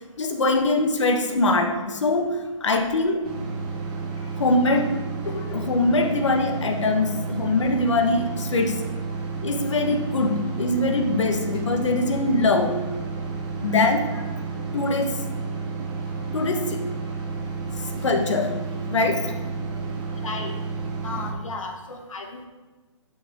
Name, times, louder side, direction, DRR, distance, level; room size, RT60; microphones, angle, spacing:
voice 1, 0.2-3.3 4.4-5.0 5.2-8.9 9.4-12.8 13.6-14.2 14.7-15.2 16.3-16.8 17.8-18.6 18.9-19.4, left 2 dB, 65° left, 5 dB, 1.5 m, -23 dB
sound 1, 3.2-21.3, right 4 dB, 45° right, 2.9 m, -31 dB
voice 2, 20.2-20.5 21.0-22.5, left 4 dB, 90° left, 3 dB, 2.0 m, -34 dB
12.0 x 6.2 x 3.7 m, 1.2 s
hypercardioid pair, 160°, 16 cm